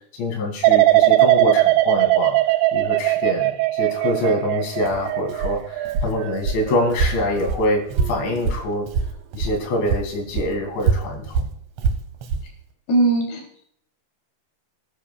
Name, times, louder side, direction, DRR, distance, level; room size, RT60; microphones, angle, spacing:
voice 1, 0.2-2.4 2.7-8.9 9.3-11.4, left 1 dB, 90° left, 0 dB, 5.1 m, -25 dB
sound 1, 0.6-7.6 8.0-8.4, right 16 dB, 90° right, 3.0 m, -20 dB
Walk footsteps, 4.8-9.6 9.9-12.5, right 5 dB, 65° right, 1.7 m, -25 dB
voice 2, 12.9-13.6, right 2 dB, 70° left, 1 dB, 5.1 m, -20 dB
20.0 x 11.0 x 2.4 m, 0.65 s
omnidirectional pair, 5.0 m